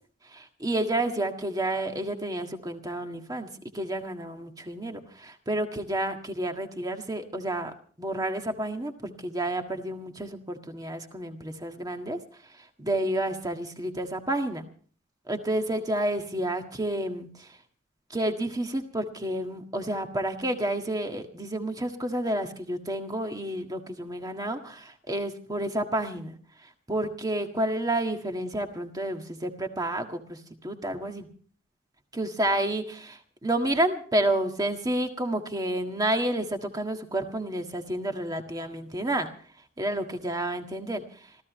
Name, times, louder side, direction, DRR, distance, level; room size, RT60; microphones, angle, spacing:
voice 1, 0.2-3.5 3.7-14.6 15.3-17.6 18.1-26.4 26.6-31.3 32.1-39.3 39.8-41.4, right 1 dB, 20° right, 5 dB, 1.7 m, -30 dB
26.5 x 15.0 x 3.1 m, 0.43 s
head